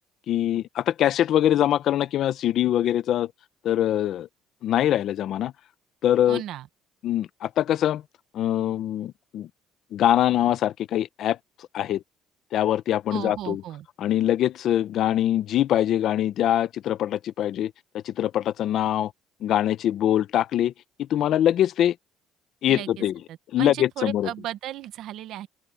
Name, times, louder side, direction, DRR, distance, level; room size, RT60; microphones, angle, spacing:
voice 1, 0.3-3.3 3.6-4.3 4.6-5.5 6.0-6.4 7.0-8.0 8.3-9.5 9.9-11.4 11.7-12.0 12.5-13.6 14.0-17.7 18.0-19.1 19.4-20.7 21.0-21.9 22.6-23.2 23.5-24.3, left 12 dB, 50° left, 0.8 m, -23 dB
voice 2, 6.3-6.7 13.1-13.9 22.6-25.5, right 13 dB, 60° right, 1.2 m, -35 dB
open air
cardioid pair, 150°, 0 cm